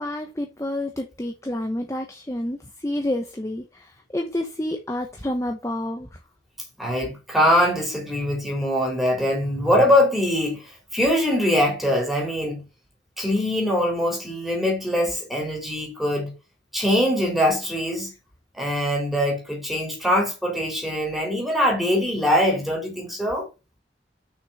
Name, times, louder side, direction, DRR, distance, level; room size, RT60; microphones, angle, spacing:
voice 1, 0.0-6.2, left 1 dB, 15° left, 0.9 m, -29 dB
voice 2, 6.8-12.6 13.2-16.3 16.7-18.1 18.5-23.5, left 1 dB, ahead, 3.4 m, -22 dB
6.4 x 6.2 x 5.5 m
head